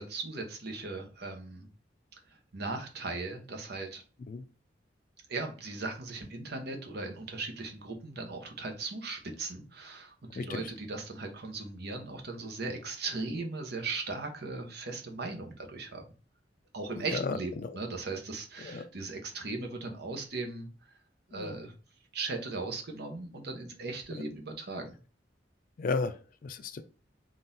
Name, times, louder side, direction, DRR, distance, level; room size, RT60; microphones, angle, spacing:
voice 1, 0.0-1.7 2.5-4.0 5.3-16.0 16.7-20.7 21.3-21.7 22.1-24.9, right 3 dB, 65° right, 4 dB, 0.9 m, -38 dB
voice 2, 17.0-17.8 18.6-18.9 21.3-21.6 24.1-24.2 25.8-26.8, left 4 dB, 50° left, 9 dB, 0.4 m, -35 dB
3.8 x 2.5 x 3.9 m, 0.37 s
head